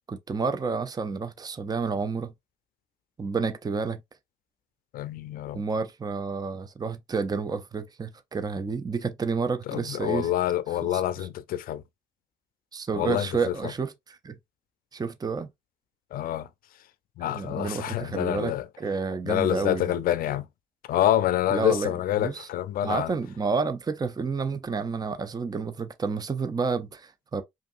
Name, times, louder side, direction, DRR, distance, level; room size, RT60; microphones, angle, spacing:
voice 1, 0.1-2.3 3.2-4.0 5.5-10.3 10.9-11.0 12.7-14.4 14.9-15.5 17.2-19.9 21.5-22.5 22.8-27.4, right 4 dB, 25° right, 0.6 m, -30 dB
voice 2, 4.9-5.6 9.7-11.8 12.9-13.7 16.1-16.5 17.2-18.7 19.2-20.4 20.9-23.1, left 12 dB, 75° left, 0.5 m, -27 dB
5.0 x 2.7 x 2.5 m
supercardioid pair, 65°, 15 cm